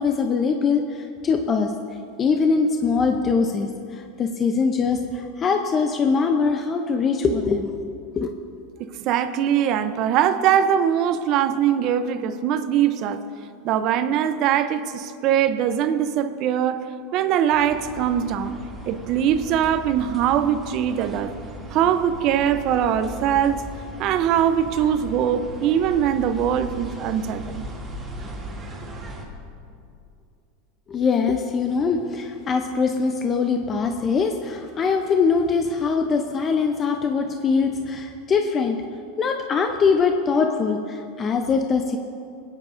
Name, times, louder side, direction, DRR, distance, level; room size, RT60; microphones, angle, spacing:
voice 1, 0.0-1.7 2.2-7.8 8.1-8.3 30.9-38.8 39.2-42.0, left 5 dB, 30° left, 5 dB, 0.7 m, -22 dB
voice 2, 8.8-13.2 13.6-16.8 17.1-18.6 18.9-21.3 21.7-23.6 24.0-27.6, right 9 dB, 50° right, 10 dB, 0.7 m, -22 dB
sound 1, 17.5-29.2, right 1 dB, 20° right, 2.5 m, -37 dB
20.5 x 9.5 x 2.6 m, 2.4 s
supercardioid pair, 115°, 0 cm